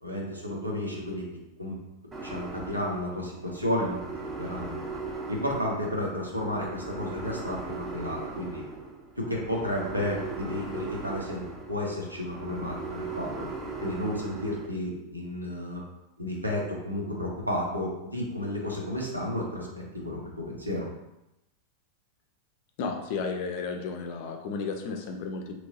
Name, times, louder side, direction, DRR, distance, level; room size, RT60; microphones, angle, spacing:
voice 1, 0.0-1.3 1.6-1.8 2.2-4.0 4.4-4.8 5.3-8.7 9.2-13.5 13.8-15.8 16.2-20.9, left 1 dB, 90° right, -2 dB, 0.7 m, -32 dB
sound 1, 2.1-14.7, right 4 dB, 15° right, 0.5 m, -39 dB
voice 2, 22.8-25.5, left 4 dB, 50° left, 4 dB, 0.4 m, -33 dB
2.9 x 2.6 x 2.7 m, 0.91 s
figure-of-eight pair, 90°, 0 cm